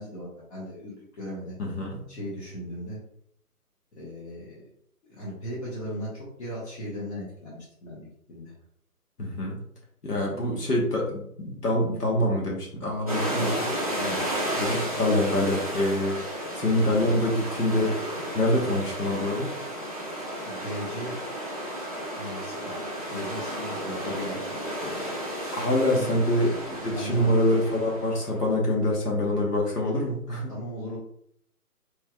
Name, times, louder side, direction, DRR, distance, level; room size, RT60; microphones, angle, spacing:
voice 1, 0.0-1.6 2.1-3.0 4.0-4.7 5.1-8.5 13.9-14.2 20.5-21.2 22.2-22.8 23.1-24.6 25.9-26.1 26.9-27.4 30.5-31.0, equal, 45° left, -7 dB, 1.3 m, -37 dB
voice 2, 1.6-2.0 9.2-9.6 10.0-13.6 14.5-16.2 16.5-18.0 18.3-19.5 24.0-24.1 25.0-25.1 25.5-30.5, left 1 dB, 85° left, -2 dB, 1.4 m, -25 dB
sound 1, 13.1-28.5, equal, 25° right, 0.4 m, -33 dB
3.4 x 3.1 x 2.3 m, 0.69 s
figure-of-eight pair, 145°, 46 cm